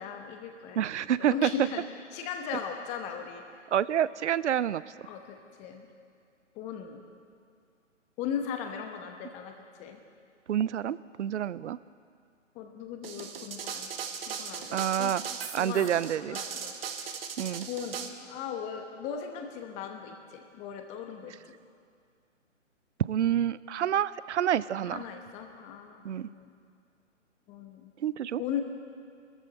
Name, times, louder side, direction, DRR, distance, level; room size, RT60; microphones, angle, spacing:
voice 1, 0.0-0.9 1.2-1.9 2.1-3.4 5.1-5.9 6.5-7.0 8.2-10.0 12.5-13.9 14.3-15.2 15.5-15.9 16.2-17.2 17.7-21.3 24.9-26.6 27.5-27.9 28.4-28.6, left 8 dB, 20° left, 5 dB, 1.1 m, -38 dB
voice 2, 0.8-1.5 3.7-4.8 10.5-11.8 14.7-15.2 15.5-16.4 17.4-17.7 23.1-25.0 26.0-26.3 28.0-28.4, right 10 dB, 65° right, 18 dB, 0.6 m, -28 dB
sound 1, 13.0-18.1, right 7 dB, 50° right, 1.3 m, -38 dB
22.0 x 14.0 x 4.2 m, 2.2 s
figure-of-eight pair, 140°, 38 cm